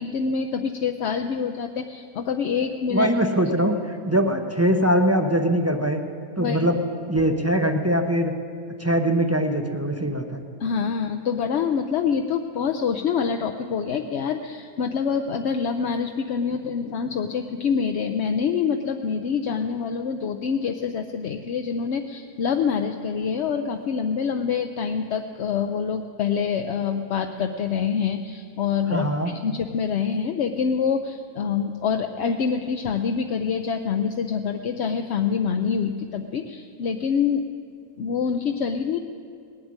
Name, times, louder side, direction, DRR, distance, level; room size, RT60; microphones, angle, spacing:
voice 1, 0.0-3.1 6.4-6.7 10.6-37.5 38.0-39.0, left 6 dB, 60° left, 5 dB, 0.8 m, -26 dB
voice 2, 2.9-3.8 4.0-6.0 6.4-6.8 7.1-8.3 8.8-10.4 28.9-29.3, right 1 dB, 15° right, 5 dB, 0.5 m, -22 dB
19.0 x 7.9 x 9.6 m, 2.4 s
omnidirectional pair, 1.5 m